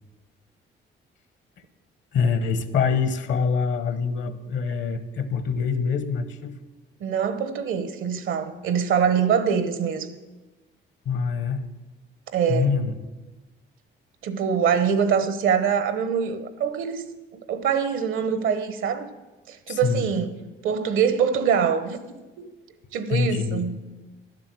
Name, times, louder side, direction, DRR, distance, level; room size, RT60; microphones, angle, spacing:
voice 1, 2.1-6.6 11.0-11.7 12.5-12.9 19.7-20.1 23.1-23.6, left 5 dB, 70° left, 1.1 m, -25 dB
voice 2, 7.0-10.1 12.3-12.7 14.2-17.0 17.5-19.1 19.5-22.0 22.9-23.8, right 7 dB, 85° right, 1.1 m, -24 dB
11.5 x 7.4 x 7.7 m
cardioid pair, 90°, 20 cm